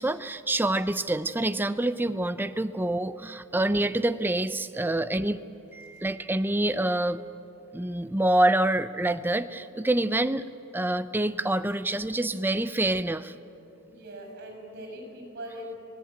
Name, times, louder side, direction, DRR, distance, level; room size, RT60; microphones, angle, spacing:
voice 1, 0.0-5.4 5.7-7.2 7.7-10.5 10.7-13.3, right 1 dB, 10° right, 12 dB, 0.5 m, -26 dB
voice 2, 13.9-15.8, equal, 45° right, 3 dB, 6.7 m, -41 dB
26.0 x 18.0 x 8.9 m, 2.9 s
head